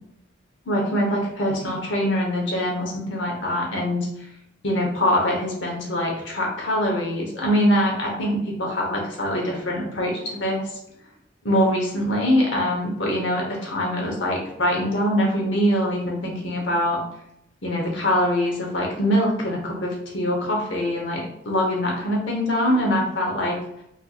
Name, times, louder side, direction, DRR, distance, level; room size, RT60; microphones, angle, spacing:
voice 1, 0.7-4.1 4.6-10.7 11.4-17.0 17.6-23.6, equal, 80° left, -1 dB, 1.0 m, -23 dB
4.4 x 2.6 x 2.4 m, 0.79 s
head